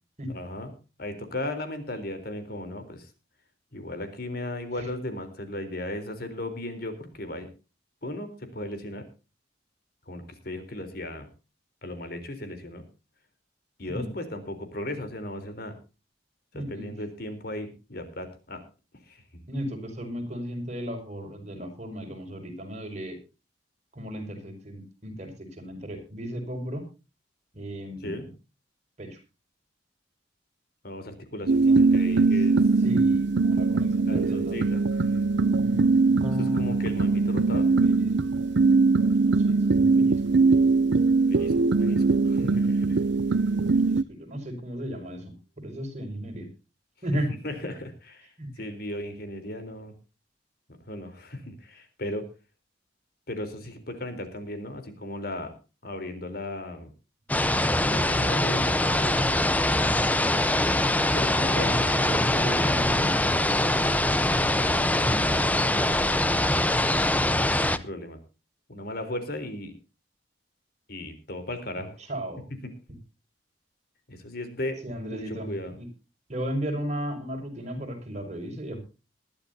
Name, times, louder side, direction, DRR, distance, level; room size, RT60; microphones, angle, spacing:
voice 1, 0.3-0.7 1.0-3.1 3.7-7.5 8.0-9.1 10.1-11.3 11.8-12.9 13.8-15.8 16.5-18.6 19.0-19.4 28.0-28.3 30.8-32.8 34.1-35.3 36.3-37.7 41.3-43.0 47.4-49.9 50.8-52.3 53.3-55.5 55.8-56.9 57.6-59.4 61.1-61.9 67.4-68.2 68.7-69.7 70.9-72.0 72.6-72.7 74.1-74.8 75.1-75.8, left 1 dB, 55° left, 9 dB, 3.8 m, -36 dB
voice 2, 16.5-16.9 19.5-23.2 23.9-26.8 27.5-28.3 29.0-29.2 31.7-32.3 32.8-34.6 35.6-36.7 37.8-38.1 39.2-40.6 41.9-42.2 43.7-46.5 47.0-47.3 48.4-48.5 57.9-58.5 61.3-64.0 64.6-66.6 72.1-72.4 74.8-75.9 76.3-78.8, equal, 40° right, 3 dB, 6.0 m, -36 dB
sound 1, 31.5-44.0, right 3 dB, 70° right, 0.6 m, -21 dB
Electric guitar / Bass guitar, 36.2-42.6, left 1 dB, 25° right, 4.2 m, -42 dB
sound 2, 57.3-67.8, left 1 dB, 10° left, 0.8 m, -23 dB
21.0 x 13.0 x 2.8 m, 0.31 s
head